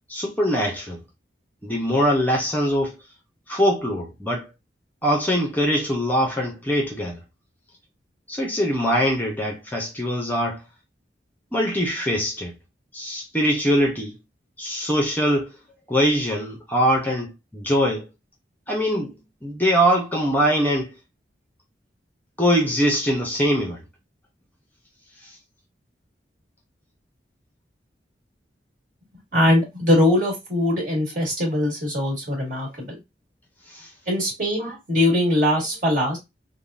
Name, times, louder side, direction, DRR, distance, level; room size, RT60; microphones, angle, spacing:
voice 1, 0.1-1.0 1.6-2.9 3.5-4.5 5.0-7.2 8.3-10.6 11.5-12.5 12.9-14.2 14.6-15.5 15.9-18.1 18.7-20.9 22.4-23.8 25.2-25.3 33.7-33.9, equal, 10° left, 0.6 m, -22 dB
voice 2, 29.3-33.0 34.1-36.2, left 1 dB, 50° right, 1.6 m, -21 dB
3.5 x 2.1 x 2.5 m
head